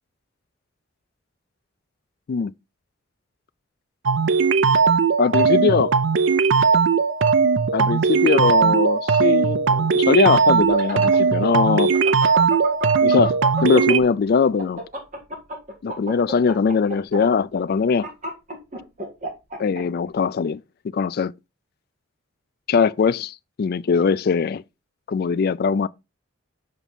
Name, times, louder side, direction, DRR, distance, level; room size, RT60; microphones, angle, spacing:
sound 1, 4.1-14.0, right 5 dB, 65° right, 0.5 m, -18 dB
voice 1, 5.2-5.9 7.7-11.9 13.0-14.8 15.8-18.1 19.6-20.6 20.9-21.3 22.7-24.6 25.1-25.9, left 5 dB, 50° left, 0.3 m, -21 dB
sound 2, 10.5-14.1 14.4-19.8, equal, 40° right, 1.9 m, -31 dB
6.0 x 5.3 x 4.2 m
head